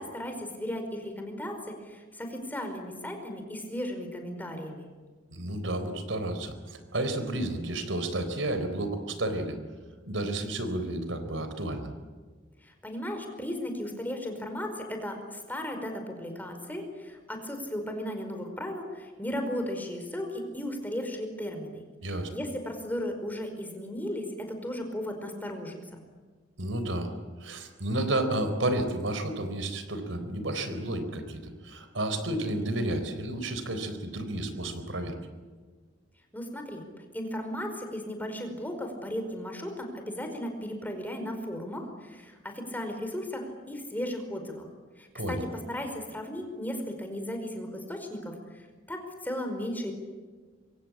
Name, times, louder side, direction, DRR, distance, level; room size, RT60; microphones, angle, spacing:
voice 1, 0.0-4.9 12.6-21.8 22.1-26.0 36.3-44.7 45.0-45.4 45.7-49.9, left 1 dB, 10° left, 5 dB, 5.1 m, -36 dB
voice 2, 5.3-9.6 10.1-11.9 22.0-22.3 26.6-27.1 27.4-35.1 45.2-45.4, right 1 dB, 80° right, 9 dB, 4.1 m, -31 dB
26.5 x 24.5 x 8.6 m, 1.4 s
head